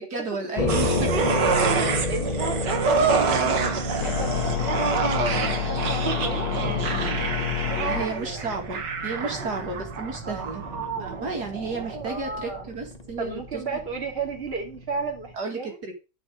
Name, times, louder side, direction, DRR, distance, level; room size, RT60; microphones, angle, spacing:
voice 1, 0.1-1.2 7.9-10.6 11.0-13.6 15.3-15.9, right 3 dB, 65° right, 2 dB, 2.9 m, -33 dB
sound 1, 0.6-15.4, left 2 dB, 30° left, 0.9 m, -32 dB
sound 2, 0.7-12.2 12.5-12.6, right 5 dB, 85° right, 2.1 m, -27 dB
voice 2, 1.0-1.7 1.9-4.9 5.5-6.5 7.7-8.6 9.2-9.7 10.2-10.5 12.0-12.6 13.2-15.8, right 4 dB, 35° right, 2 dB, 2.7 m, -34 dB
sound 3, 4.0-8.0, left 11 dB, 65° left, 1.3 m, -29 dB
10.0 x 6.4 x 4.9 m, 0.30 s
omnidirectional pair, 1.8 m